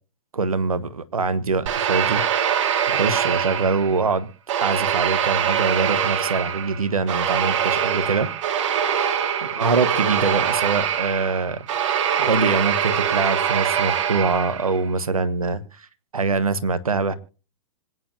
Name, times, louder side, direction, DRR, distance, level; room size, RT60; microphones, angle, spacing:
voice 1, 0.3-2.2 2.9-4.3 4.6-8.3 9.6-11.7 12.2-15.6 16.1-17.1, right 4 dB, 90° right, 1.3 m, -23 dB
sound 1, 1.7-4.1 4.5-14.8, right 8 dB, 60° right, 2.1 m, -23 dB
26.0 x 9.4 x 2.8 m
hypercardioid pair, 120°, 18 cm